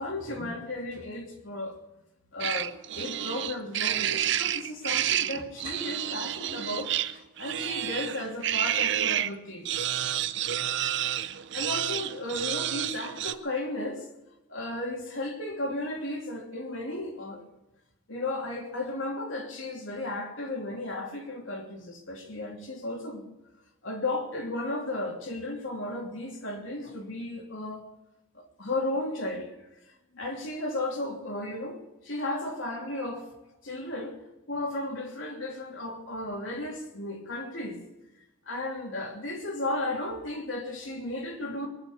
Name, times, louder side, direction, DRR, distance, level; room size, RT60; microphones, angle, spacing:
voice 1, 0.0-1.8 2.3-9.7 11.5-14.1 14.5-17.5 18.1-23.2 23.8-27.9 28.3-29.6 30.1-33.3 33.6-34.2 34.5-37.8 38.5-41.7, left 2 dB, 65° left, 2.9 m, -34 dB
sound 1, 2.4-9.3 9.7-13.3, right 11 dB, 55° right, 0.6 m, -29 dB
22.0 x 7.4 x 8.4 m
head